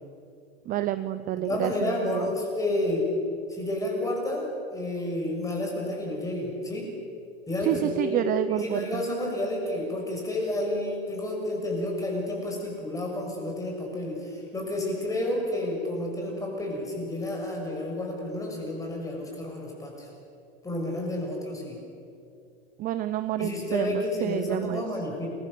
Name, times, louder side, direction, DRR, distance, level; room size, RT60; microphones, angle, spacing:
voice 1, 0.7-2.3 7.6-9.0 22.8-24.9, right 13 dB, 25° right, 11 dB, 0.6 m, -29 dB
voice 2, 1.4-3.1 3.5-6.9 7.5-20.1 20.6-21.8 23.4-25.3, left 1 dB, 10° left, 0 dB, 6.6 m, -30 dB
27.5 x 23.0 x 6.9 m, 2.5 s
supercardioid pair, 150°, 32 cm